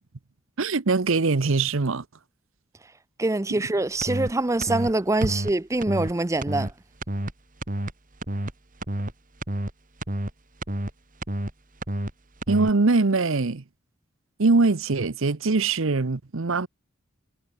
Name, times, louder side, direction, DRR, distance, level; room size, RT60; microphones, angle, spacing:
voice 1, 0.6-2.0 3.5-3.6 12.5-13.6 14.4-16.7, right 3 dB, 60° right, 0.8 m, -22 dB
voice 2, 3.2-6.7, right 2 dB, 15° right, 0.5 m, -24 dB
sound 1, 4.0-4.3 4.6-4.9 5.2-5.5 5.8-6.1 6.4-6.7 7.0-7.3 7.6-7.9 8.2-8.5 8.8-9.1 9.4-9.7 10.0-10.3 10.6-10.9 11.2-11.5 11.8-12.1 12.4-12.7, right 1 dB, 40° right, 2.2 m, -29 dB
head